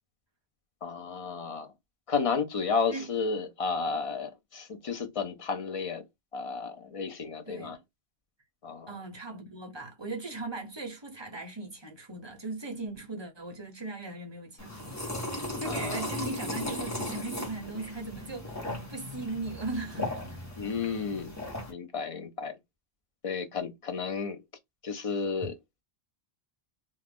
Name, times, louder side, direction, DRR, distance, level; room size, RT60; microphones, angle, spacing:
voice 1, 0.8-1.7 2.1-6.0 6.3-7.8 8.6-8.9 15.7-16.1 20.6-21.3 21.7-22.6 23.2-24.4 24.8-25.5, left 5 dB, 50° left, 0.4 m, -32 dB
voice 2, 8.9-15.0 15.3-20.4, right 3 dB, 30° right, 0.6 m, -38 dB
sound 1, 14.6-21.7, left 1 dB, 15° left, 1.0 m, -37 dB
2.4 x 2.2 x 3.4 m
omnidirectional pair, 1.1 m